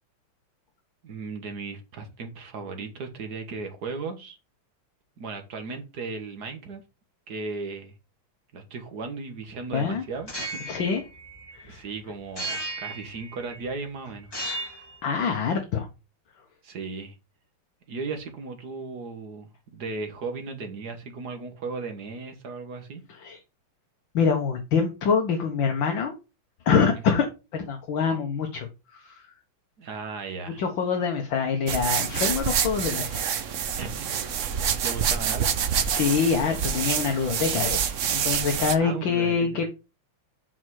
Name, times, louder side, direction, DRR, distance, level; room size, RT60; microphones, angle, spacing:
voice 1, 1.0-4.4 5.2-6.8 7.3-7.9 8.5-10.8 11.6-14.3 16.6-17.2 17.9-23.0 26.9-27.2 29.8-30.6 33.8-34.2 34.8-35.7 38.8-39.6, right 4 dB, 50° right, 1.9 m, -36 dB
voice 2, 9.7-10.0 10.7-11.0 11.5-11.8 15.0-15.9 23.2-23.4 24.1-26.1 26.7-27.3 27.5-29.2 30.6-33.2 35.8-39.7, left 6 dB, 65° left, 1.8 m, -25 dB
sound 1, 10.2-11.8 12.4-13.7 14.2-15.0, right 1 dB, 10° left, 3.2 m, -35 dB
sound 2, 31.7-38.8, right 8 dB, 75° right, 0.6 m, -27 dB
6.1 x 5.1 x 6.3 m
omnidirectional pair, 2.4 m